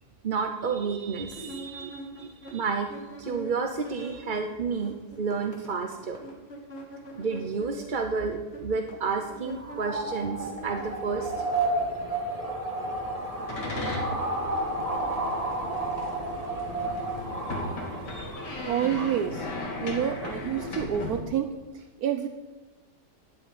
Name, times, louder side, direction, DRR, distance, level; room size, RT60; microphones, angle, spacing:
voice 1, 0.2-2.9 3.2-6.2 7.2-11.4, right 5 dB, 40° right, 4 dB, 0.8 m, -31 dB
sound 1, 1.3-4.5 4.7-11.4, right 1 dB, 35° left, 2.5 m, -44 dB
sound 2, 9.4-19.2, right 2 dB, 20° right, 1.8 m, -32 dB
sound 3, 12.9-21.2, left 2 dB, 80° left, 2.7 m, -37 dB
voice 2, 18.7-19.5 19.8-22.3, right 9 dB, 70° right, 8 dB, 1.2 m, -28 dB
11.0 x 7.3 x 9.5 m, 1.2 s
omnidirectional pair, 1.8 m